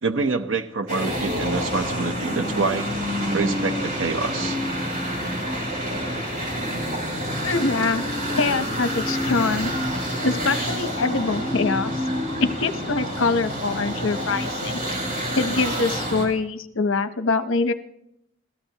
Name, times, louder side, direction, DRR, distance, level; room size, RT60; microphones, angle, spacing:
voice 1, 0.0-2.9 3.3-4.6, right 4 dB, 75° right, 8 dB, 0.8 m, -26 dB
sound 1, 0.9-16.3, equal, 45° right, 5.1 m, -27 dB
voice 2, 7.4-8.1 8.3-9.7 10.2-11.9 12.4-14.8 15.4-17.7, left 3 dB, 85° left, 10 dB, 0.9 m, -24 dB
26.0 x 16.5 x 2.9 m, 0.81 s
head